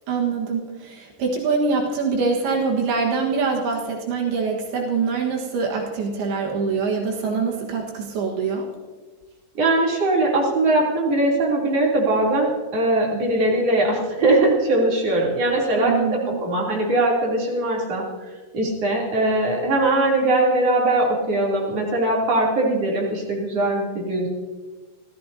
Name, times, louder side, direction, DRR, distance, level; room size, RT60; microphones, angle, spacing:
voice 1, 0.1-8.7 15.8-16.4, right 4 dB, 80° right, 0 dB, 3.5 m, -24 dB
voice 2, 9.6-15.9 16.4-18.0 18.5-24.3, right 2 dB, 40° right, -3 dB, 4.0 m, -21 dB
29.0 x 14.5 x 2.8 m, 1.4 s
omnidirectional pair, 4.5 m